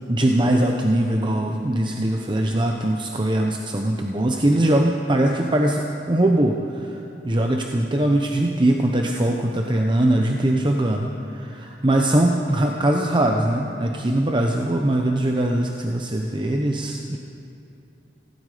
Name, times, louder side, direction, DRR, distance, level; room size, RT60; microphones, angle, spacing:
voice 1, 0.1-7.0 7.2-17.2, right 1 dB, 30° right, 2 dB, 0.8 m, -21 dB
17.5 x 16.5 x 5.0 m, 2.8 s
head